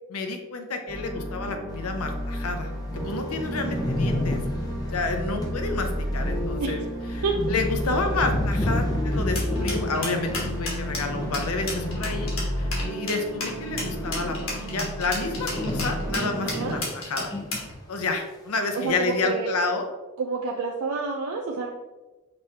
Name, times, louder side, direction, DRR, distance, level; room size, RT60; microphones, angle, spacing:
voice 1, 0.1-4.4 4.9-6.8 7.1-12.3 12.6-17.3 17.9-19.9, left 3 dB, 85° left, 5 dB, 0.6 m, -30 dB
sound 1, 0.9-16.8, equal, 30° right, 1.1 m, -31 dB
sound 2, 2.0-2.1 2.5-2.6 2.7-13.0 13.2-17.7 18.0-18.1 18.7-19.1, left 1 dB, 15° left, 0.5 m, -33 dB
sound 3, 9.4-17.7, left 2 dB, 65° left, 1.3 m, -32 dB
voice 2, 16.4-16.8 18.7-19.6 20.2-21.7, right 4 dB, 75° right, 0 dB, 0.5 m, -29 dB
5.3 x 3.1 x 2.8 m, 1.1 s
head